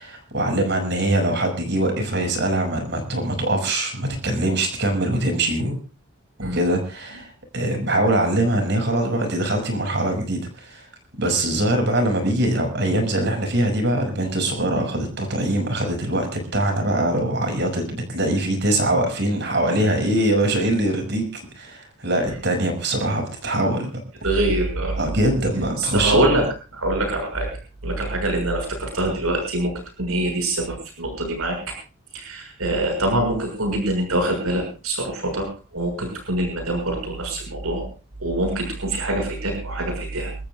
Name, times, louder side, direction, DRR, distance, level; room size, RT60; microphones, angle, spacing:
voice 1, 0.0-5.8 6.5-10.9 11.2-23.9 25.0-26.3, right 1 dB, 55° right, 4 dB, 6.1 m, -23 dB
voice 2, 24.2-25.0 25.8-26.5 26.7-27.5 27.8-29.7 30.0-31.6 32.1-35.5 35.7-37.8 38.2-40.3, right 1 dB, 90° right, 2 dB, 6.6 m, -24 dB
29.0 x 14.0 x 2.4 m, 0.35 s
head